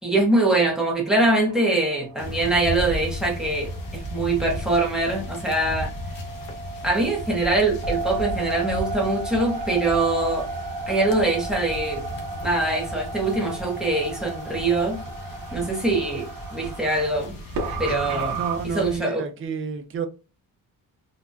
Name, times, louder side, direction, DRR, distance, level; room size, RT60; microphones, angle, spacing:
voice 1, 0.0-5.9 6.8-10.5 10.9-12.0 12.4-15.0 15.5-17.3 17.8-18.4 18.6-19.2, right 2 dB, ahead, 0.8 m, -23 dB
sound 1, 0.6-18.6, right 3 dB, 70° right, 0.8 m, -35 dB
sound 2, 2.2-19.0, left 1 dB, 65° left, 0.8 m, -35 dB
voice 2, 18.3-20.1, right 6 dB, 35° right, 0.4 m, -30 dB
3.9 x 2.2 x 2.2 m
wide cardioid pair, 180°, 36 cm